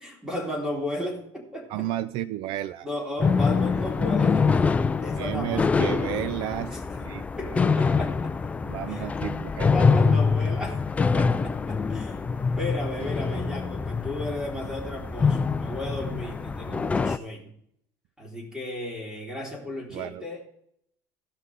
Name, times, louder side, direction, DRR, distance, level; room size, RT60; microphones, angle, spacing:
voice 1, 0.0-1.9 2.8-4.7 5.0-5.8 6.7-6.8 7.4-8.3 8.9-9.1 9.7-10.8 11.1-12.2 12.5-17.5 18.2-20.4, left 1 dB, 5° right, -1 dB, 3.7 m, -34 dB
voice 2, 1.7-2.9 3.3-3.4 3.7-3.8 5.2-7.5 8.6-9.7 19.9-20.2, right 13 dB, 60° right, 16 dB, 0.4 m, -32 dB
sound 1, 3.2-17.2, left 5 dB, 15° left, 0.4 m, -25 dB
16.5 x 5.8 x 4.8 m, 0.71 s
cardioid pair, 145°, 10 cm